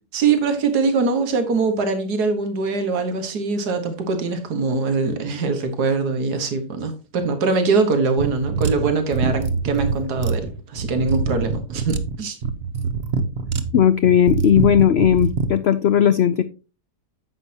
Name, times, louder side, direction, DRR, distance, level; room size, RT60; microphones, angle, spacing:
voice 1, 0.1-12.4, right 4 dB, 80° right, 1.9 m, -22 dB
sound 1, 8.2-15.5, right 5 dB, 45° right, 1.0 m, -24 dB
voice 2, 13.7-16.4, left 9 dB, 85° left, 0.5 m, -16 dB
9.9 x 8.0 x 2.8 m
omnidirectional pair, 1.7 m